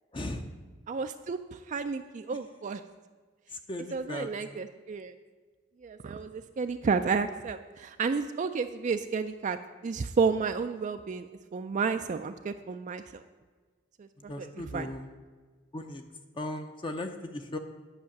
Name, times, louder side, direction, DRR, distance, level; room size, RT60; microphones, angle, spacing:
voice 1, 0.1-0.4 3.5-4.6 14.2-15.1 15.7-16.0 16.4-17.6, left 1 dB, 25° left, 5 dB, 0.5 m, -37 dB
voice 2, 0.9-2.8 3.9-5.1 5.8-9.6 9.8-11.3 11.5-13.2 14.0-14.9, right 5 dB, 35° right, 8 dB, 0.3 m, -31 dB
10.0 x 5.6 x 7.0 m, 1.4 s
head